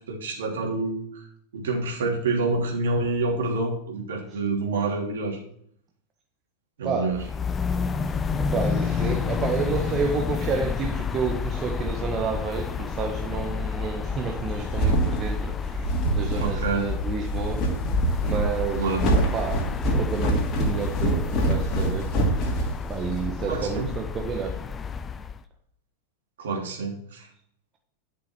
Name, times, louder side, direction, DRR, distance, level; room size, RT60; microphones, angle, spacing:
voice 1, 0.1-1.2 1.5-5.4 6.8-7.2 16.4-16.8 18.8-19.0 23.4-23.9 26.4-27.3, right 3 dB, 60° right, -1 dB, 3.1 m, -27 dB
sound 1, 7.1-25.4, left 6 dB, 20° left, 0.5 m, -30 dB
voice 2, 8.1-17.9 18.2-22.2 22.9-24.6, right 5 dB, 30° right, 3 dB, 1.3 m, -30 dB
sound 2, 14.3-23.2, right 2 dB, 35° left, 2.7 m, -25 dB
11.5 x 6.9 x 4.6 m, 0.66 s
figure-of-eight pair, 90°, 0 cm